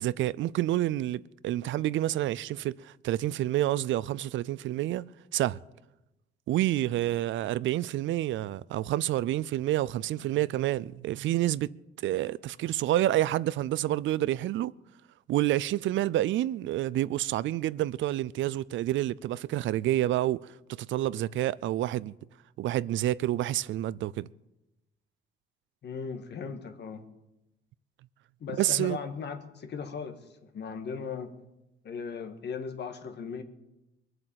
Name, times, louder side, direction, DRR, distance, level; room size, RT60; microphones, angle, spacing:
voice 1, 0.0-5.6 6.5-11.8 12.0-14.7 15.3-20.5 20.8-22.1 22.6-24.3 28.5-29.0, right 14 dB, 75° right, 0.5 m, -28 dB
voice 2, 25.8-27.0 28.4-30.2 30.5-31.3 31.8-33.4, left 6 dB, 60° left, 1.7 m, -37 dB
22.0 x 7.9 x 7.6 m
cardioid pair, 90°, 20 cm